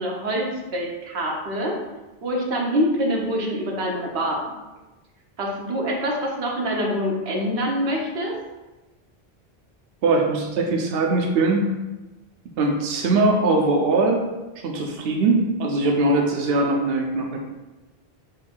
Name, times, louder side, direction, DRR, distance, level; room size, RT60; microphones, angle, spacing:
voice 1, 0.0-1.7 2.2-4.4 5.4-8.4, equal, 85° right, -1 dB, 1.1 m, -25 dB
voice 2, 10.0-11.6 12.6-14.2 14.6-17.4, right 2 dB, 70° right, 1 dB, 0.7 m, -21 dB
3.8 x 2.6 x 4.3 m, 1.1 s
omnidirectional pair, 1.1 m